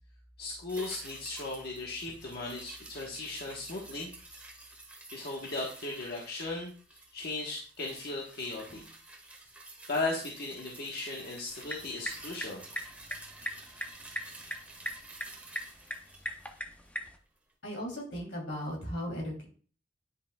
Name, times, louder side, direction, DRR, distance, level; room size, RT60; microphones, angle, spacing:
voice 1, 0.4-4.5 5.1-8.8 9.9-12.6, left 2 dB, 55° left, -3 dB, 1.3 m, -37 dB
sound 1, 0.7-17.2 17.5-17.6, right 2 dB, 10° right, 1.5 m, -51 dB
sound 2, 11.5-17.2, left 1 dB, 10° left, 0.7 m, -41 dB
voice 2, 17.6-19.4, equal, 80° left, -1 dB, 3.2 m, -36 dB
10.0 x 5.6 x 2.3 m, 0.42 s
head